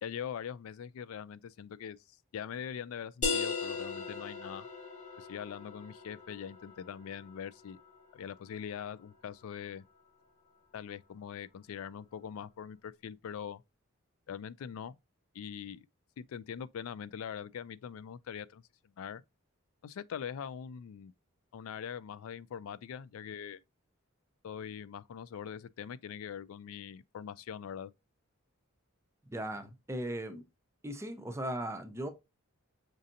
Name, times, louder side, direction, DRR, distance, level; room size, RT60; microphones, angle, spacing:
voice 1, 0.0-2.0 2.3-4.7 5.2-7.8 8.1-9.8 10.7-13.6 14.3-15.0 15.3-15.9 16.2-18.6 19.0-19.2 19.8-21.1 21.5-23.6 24.4-27.9, left 8 dB, 70° left, 0.3 m, -42 dB
sound 1, 3.2-8.6, left 4 dB, 40° left, 1.0 m, -38 dB
voice 2, 29.3-30.4 30.8-32.1, right 1 dB, 15° right, 0.6 m, -38 dB
5.2 x 2.7 x 2.5 m
head